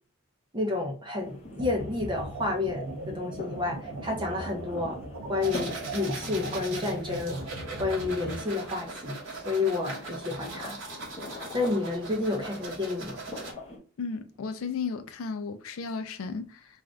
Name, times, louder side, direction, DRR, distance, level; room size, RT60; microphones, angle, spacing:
voice 1, 0.5-5.0 5.3-7.4 7.8-9.2 9.4-10.8 11.5-13.2, left 3 dB, 20° right, 0.6 m, -30 dB
sound 1, 1.2-13.8, left 2 dB, 30° left, 0.8 m, -44 dB
sound 2, 1.6-8.4, right 2 dB, 80° right, 0.5 m, -39 dB
sound 3, 5.4-13.5, right 3 dB, 60° right, 0.9 m, -41 dB
voice 2, 14.0-16.8, left 5 dB, 80° left, 0.4 m, -34 dB
2.5 x 2.4 x 3.2 m
head